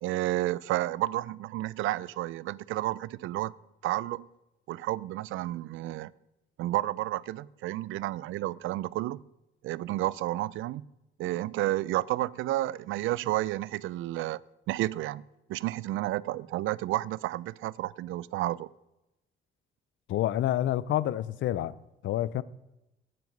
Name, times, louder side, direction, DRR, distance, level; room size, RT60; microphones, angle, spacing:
voice 1, 0.0-3.5 3.8-4.3 4.7-6.1 6.6-9.2 9.6-10.8 11.2-14.4 14.7-15.2 15.5-18.7, right 16 dB, 85° right, 0.5 m, -31 dB
voice 2, 20.1-21.8 22.0-22.4, left 12 dB, 75° left, 0.6 m, -28 dB
18.5 x 7.6 x 5.3 m
cardioid pair, 90°, 20 cm